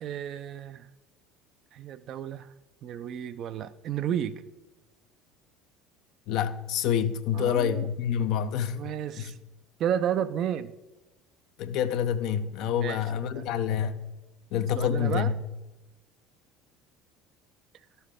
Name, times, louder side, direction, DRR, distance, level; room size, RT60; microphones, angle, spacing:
voice 1, 0.0-0.9 1.7-2.5 2.8-4.4 7.3-7.9 8.7-9.4 9.8-10.7 12.8-13.0 13.3-13.5 14.8-15.3, right 9 dB, 55° right, 0.5 m, -32 dB
voice 2, 6.3-8.8 9.2-9.3 11.6-13.9 14.5-15.4, left 8 dB, 65° left, 0.6 m, -27 dB
12.0 x 6.9 x 3.6 m
hypercardioid pair, 70°, 0 cm